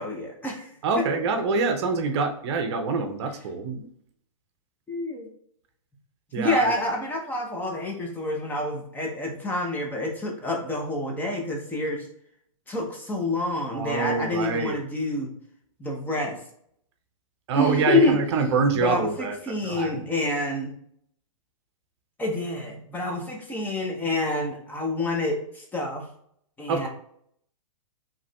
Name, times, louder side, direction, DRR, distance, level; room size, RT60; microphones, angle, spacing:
voice 1, 0.0-0.7 1.0-1.1 1.3-1.4 4.9-5.3 6.4-12.1 12.7-15.3 15.8-16.4 17.5-18.2 18.7-20.7 22.2-26.1 26.6-26.9, left 2 dB, 10° left, -1 dB, 0.8 m, -28 dB
voice 2, 0.8-3.9 6.3-6.7 13.7-14.8 17.5-19.4 19.6-20.0 26.7-26.9, right 4 dB, 50° right, 6 dB, 0.7 m, -25 dB
4.8 x 3.1 x 2.3 m, 0.68 s
hypercardioid pair, 130°, 18 cm